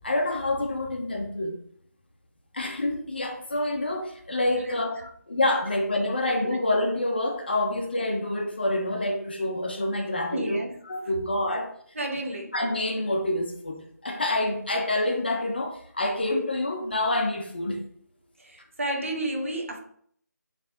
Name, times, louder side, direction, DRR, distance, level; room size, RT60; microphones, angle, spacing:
voice 1, 0.0-1.6 2.5-4.9 5.3-10.6 10.9-11.7 12.5-17.8, left 1 dB, 35° left, 0.8 m, -27 dB
voice 2, 4.6-5.1 10.3-10.8 11.9-12.5 18.4-19.8, right 1 dB, 45° right, 1.1 m, -32 dB
8.5 x 3.4 x 3.4 m
figure-of-eight pair, 175°, 10 cm